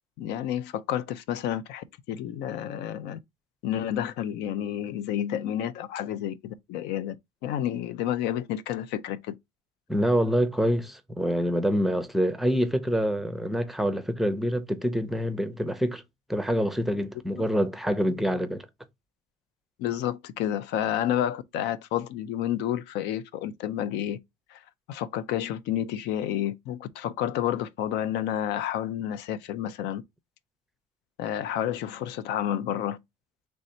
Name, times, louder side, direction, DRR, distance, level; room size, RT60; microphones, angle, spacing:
voice 1, 0.2-3.2 3.6-7.2 7.4-9.3 17.3-17.4 19.8-24.2 24.5-24.6 24.9-30.0 31.2-33.0, left 11 dB, 85° left, 0.5 m, -30 dB
voice 2, 9.9-16.0 16.3-18.7, equal, ahead, 0.5 m, -26 dB
3.3 x 2.7 x 4.2 m
cardioid pair, 110°, 17 cm